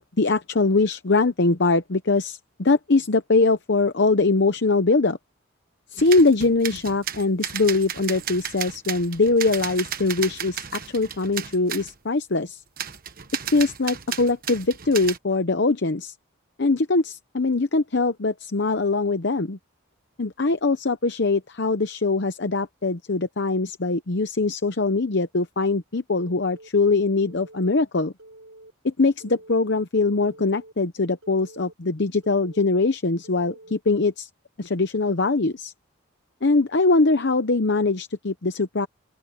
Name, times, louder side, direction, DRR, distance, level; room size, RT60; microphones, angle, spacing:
voice 1, 0.0-5.2 5.9-12.6 13.5-16.1 16.6-19.6 20.2-28.1 28.8-34.3 34.6-35.7 36.4-38.9, left 3 dB, 55° left, 0.8 m, -22 dB
sound 1, 6.0-11.9 12.8-15.2, right 9 dB, 45° right, 1.2 m, -34 dB
Telephone, 26.2-26.7 27.2-27.7 28.2-28.7 29.2-29.7 30.2-30.7 31.2-31.7 32.2-32.7 33.2-33.7, right 1 dB, 90° right, 4.4 m, -47 dB
open air
head